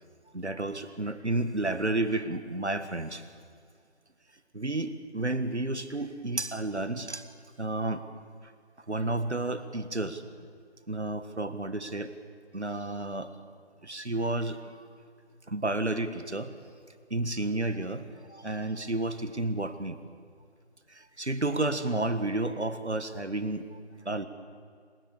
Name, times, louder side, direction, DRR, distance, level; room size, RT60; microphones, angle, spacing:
voice 1, 0.3-3.2 4.5-7.3 7.6-8.1 8.9-10.2 10.9-12.1 12.5-13.3 13.8-14.8 15.5-16.5 17.1-20.0 20.9-23.8 24.1-24.3, right 2 dB, 75° right, 11 dB, 1.8 m, -31 dB
27.0 x 15.5 x 8.6 m, 2.1 s
figure-of-eight pair, 170°, 34 cm